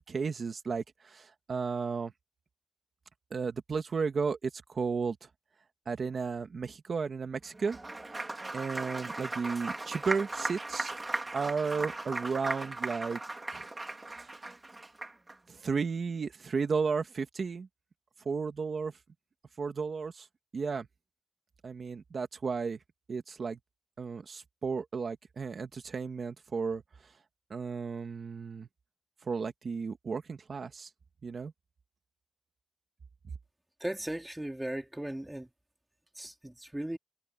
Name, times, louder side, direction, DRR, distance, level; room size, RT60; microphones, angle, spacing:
voice 1, 0.0-2.1 3.3-5.2 5.9-7.8 8.1-8.2 8.5-10.9 11.3-13.2 13.5-13.7 14.1-14.5 15.5-17.7 18.3-18.9 19.6-20.3 20.5-20.9 21.6-22.8 23.1-23.6 24.0-26.8 27.5-28.7 29.3-30.9 31.2-31.5, right 5 dB, 90° right, 2.0 m, -34 dB
Applause, 7.5-15.4, right 2 dB, 30° right, 3.3 m, -38 dB
voice 2, 33.8-35.5 36.1-37.0, right 1 dB, 10° right, 3.5 m, -37 dB
wide cardioid pair, 105°, 0 cm